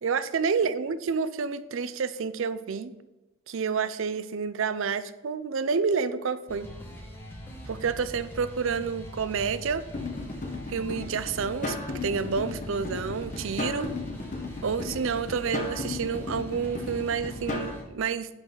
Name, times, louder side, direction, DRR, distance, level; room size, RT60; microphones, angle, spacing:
voice 1, 0.0-2.9 3.5-6.7 7.7-9.8 10.7-11.8 12.0-13.9 14.6-18.3, right 5 dB, 60° right, 13 dB, 0.4 m, -29 dB
sound 1, 6.5-17.8, equal, 10° left, 1.2 m, -42 dB
sound 2, 9.9-17.7, left 3 dB, 35° left, 1.1 m, -36 dB
10.5 x 4.1 x 3.8 m, 1.0 s
head